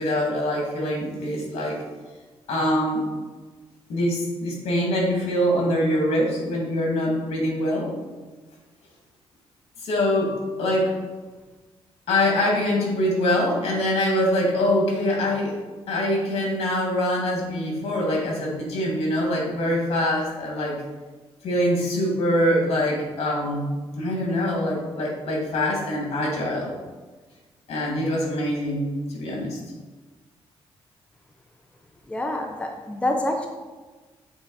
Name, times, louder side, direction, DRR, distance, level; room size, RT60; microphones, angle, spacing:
voice 1, 0.0-1.8 2.5-3.0 3.9-7.9 9.8-10.3 10.6-10.9 12.1-15.6 15.9-20.8 21.4-26.7 27.7-29.6, left 1 dB, 85° left, -2 dB, 2.2 m, -24 dB
voice 2, 32.1-33.5, left 1 dB, 10° left, 2 dB, 0.7 m, -26 dB
7.9 x 4.0 x 4.1 m, 1.3 s
cardioid pair, 115°, 10 cm